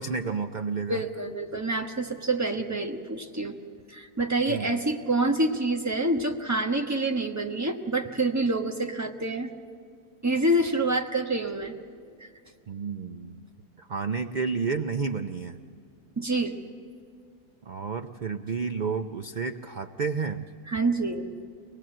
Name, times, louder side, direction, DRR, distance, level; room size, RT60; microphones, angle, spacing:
voice 1, 0.0-1.0 4.5-4.8 12.7-13.4 13.8-15.6 17.7-20.4, right 5 dB, 75° right, 7 dB, 0.4 m, -31 dB
voice 2, 0.9-9.5 10.2-11.7 12.2-12.3 16.2-16.6 20.7-21.3, right 2 dB, 10° right, 2 dB, 1.0 m, -27 dB
24.0 x 19.5 x 7.7 m, 2.3 s
omnidirectional pair, 1.7 m